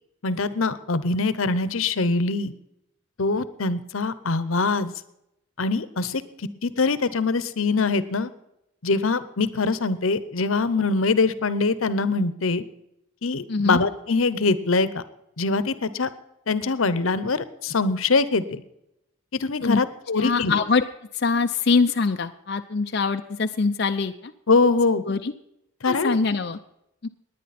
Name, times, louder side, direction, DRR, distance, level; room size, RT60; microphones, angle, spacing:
voice 1, 0.2-2.5 3.2-4.9 5.6-6.2 6.6-8.3 8.8-12.6 13.2-15.0 15.4-16.1 16.5-18.6 19.3-20.6 24.5-25.0 25.8-26.2, left 3 dB, 80° left, 15 dB, 0.9 m, -23 dB
voice 2, 20.2-20.8 21.1-24.3 25.0-25.3 25.9-26.6 27.0-27.1, left 4 dB, 50° left, 6 dB, 0.5 m, -23 dB
19.0 x 10.0 x 4.2 m, 0.83 s
head